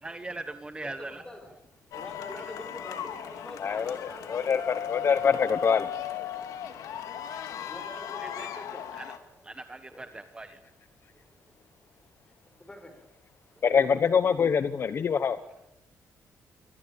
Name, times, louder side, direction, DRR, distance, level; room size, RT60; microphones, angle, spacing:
voice 1, 0.0-1.2 2.3-2.4 8.2-8.5 8.9-9.1 9.4-10.6, right 2 dB, 15° right, 9 dB, 1.3 m, -40 dB
voice 2, 0.8-1.5 1.9-4.9 7.3-8.8 9.9-10.1 12.6-13.1, left 1 dB, 15° left, 7 dB, 5.7 m, -45 dB
sound 1, 1.9-9.2, left 9 dB, 90° left, 2.6 m, -37 dB
voice 3, 3.6-4.0 4.3-5.9 13.6-15.4, left 6 dB, 45° left, 12 dB, 1.0 m, -24 dB
24.0 x 19.5 x 9.0 m, 0.87 s
cardioid pair, 130°, 6 cm